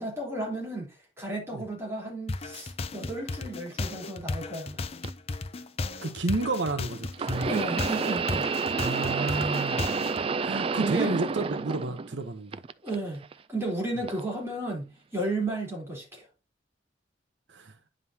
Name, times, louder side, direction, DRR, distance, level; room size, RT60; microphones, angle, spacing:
voice 1, 0.0-4.8 7.4-8.5 10.8-11.2 12.8-16.3, right 2 dB, 15° right, 3.6 m, -33 dB
sound 1, 2.3-10.2, left 3 dB, 35° left, 0.5 m, -35 dB
sound 2, 5.0-5.1 7.1-12.2 12.5-13.3 14.1-14.2 15.2-15.3, right 5 dB, 30° right, 0.3 m, -30 dB
voice 2, 6.0-7.5 8.8-10.0 10.4-12.6 17.5-17.7, right 2 dB, 80° right, 0.9 m, -31 dB
9.5 x 5.4 x 2.8 m
head